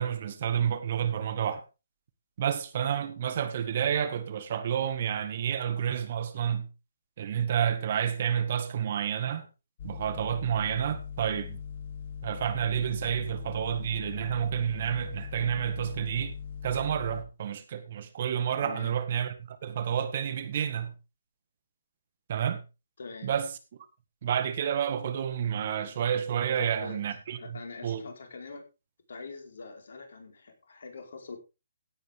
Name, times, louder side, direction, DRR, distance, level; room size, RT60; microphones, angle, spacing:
voice 1, 0.0-1.6 2.4-6.7 7.2-9.5 9.8-11.6 12.2-16.3 16.6-20.9 22.3-22.6 23.2-23.5 24.2-28.0, right 9 dB, 45° right, 1.8 m, -30 dB
sound 1, 9.8-17.2, left 7 dB, 50° left, 1.7 m, -40 dB
voice 2, 18.6-19.0 23.0-23.4 26.6-27.1 27.4-28.6 29.1-31.4, left 4 dB, 65° left, 4.6 m, -43 dB
16.5 x 8.9 x 3.6 m
hypercardioid pair, 145°, 0 cm